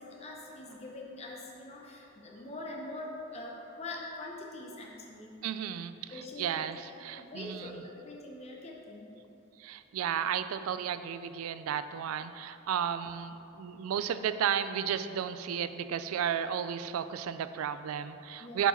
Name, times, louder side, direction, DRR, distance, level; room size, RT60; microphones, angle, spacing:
voice 1, 0.0-5.4 6.1-6.8 7.1-9.1 12.8-12.9 13.5-13.6 18.4-18.7, left 2 dB, 30° left, -2 dB, 0.7 m, -44 dB
voice 2, 5.4-6.1 6.4-7.7 9.6-18.7, right 8 dB, 85° right, 12 dB, 0.3 m, -33 dB
6.9 x 4.6 x 4.3 m, 2.8 s
head